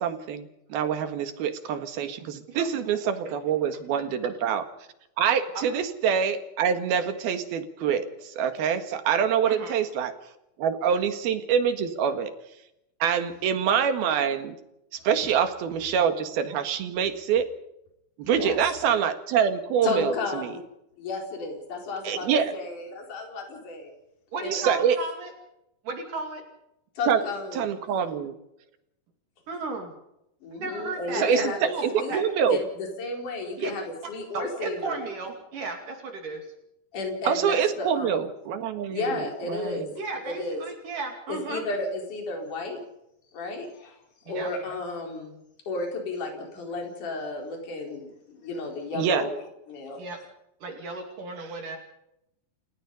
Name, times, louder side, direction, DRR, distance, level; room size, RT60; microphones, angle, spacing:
voice 1, 0.0-4.6 5.2-10.1 10.6-12.3 13.0-14.6 15.1-17.5 18.2-20.5 22.0-22.5 24.5-25.0 27.1-27.2 27.5-28.4 31.1-31.4 31.8-32.6 37.3-39.9 48.9-49.3, right 8 dB, 80° right, 9 dB, 3.6 m, -25 dB
voice 2, 18.3-18.6 19.8-20.6 21.0-23.9 24.4-24.8 27.0-27.7 30.4-32.2 32.5-35.0 36.9-38.2 38.9-39.9 40.2-40.6 41.3-42.8 43.3-43.9 44.3-45.3 45.7-49.3 49.7-50.0, left 3 dB, 55° left, 2 dB, 5.9 m, -33 dB
voice 3, 24.3-25.3 25.8-26.4 29.5-29.9 30.5-32.3 33.6-33.7 34.3-36.4 40.0-41.6 44.3-44.5 50.0-50.2 50.6-51.8, right 3 dB, 60° right, 4 dB, 4.0 m, -34 dB
30.0 x 17.0 x 5.4 m, 0.83 s
omnidirectional pair, 4.4 m